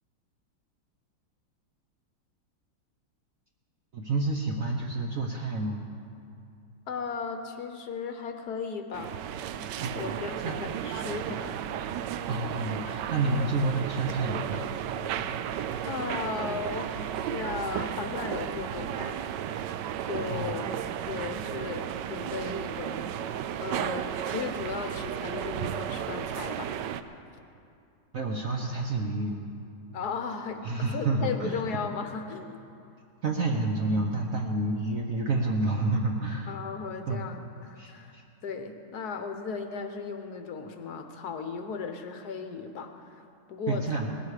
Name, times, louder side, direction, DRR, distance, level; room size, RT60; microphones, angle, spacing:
voice 1, 3.9-5.8 9.8-10.2 10.4-10.6 12.3-14.7 20.3-20.5 28.1-29.4 30.6-31.6 33.2-36.5 37.1-37.2 37.8-38.2 43.7-44.1, right 2 dB, 55° right, 1 dB, 1.0 m, -29 dB
voice 2, 6.9-9.1 9.9-12.0 15.8-19.2 20.1-20.7 21.1-26.7 27.0-27.2 29.9-30.6 30.9-32.6 36.5-38.2 38.4-44.0, left 5 dB, 60° left, 6 dB, 1.2 m, -36 dB
sound 1, 8.9-27.0, right 9 dB, 75° right, 1.0 m, -34 dB
19.0 x 12.0 x 4.9 m, 2.5 s
omnidirectional pair, 2.3 m